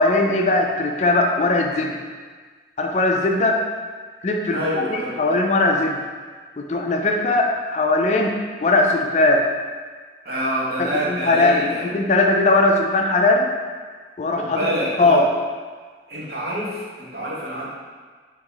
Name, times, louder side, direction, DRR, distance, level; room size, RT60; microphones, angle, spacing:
voice 1, 0.0-1.9 2.8-3.6 4.2-6.0 6.6-9.5 10.8-13.5 14.2-14.6 15.0-15.3, left 2 dB, 40° left, 2 dB, 0.4 m, -19 dB
voice 2, 4.5-5.4 10.2-11.8 14.3-15.2 16.1-17.7, equal, 55° right, -6 dB, 1.1 m, -26 dB
4.2 x 2.9 x 3.9 m, 1.5 s
head